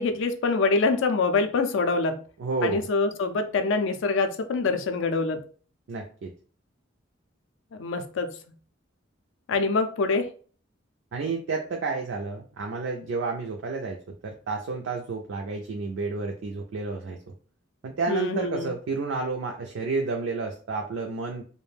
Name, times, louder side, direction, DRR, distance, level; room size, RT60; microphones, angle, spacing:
voice 1, 0.0-2.2 2.6-5.4 7.8-8.3 9.5-10.3 18.1-18.7, left 3 dB, 70° left, 7 dB, 0.4 m, -25 dB
voice 2, 2.4-2.9 5.9-6.3 11.1-17.2 17.8-21.4, right 4 dB, 65° right, 2 dB, 0.4 m, -30 dB
2.4 x 2.1 x 3.2 m, 0.42 s
head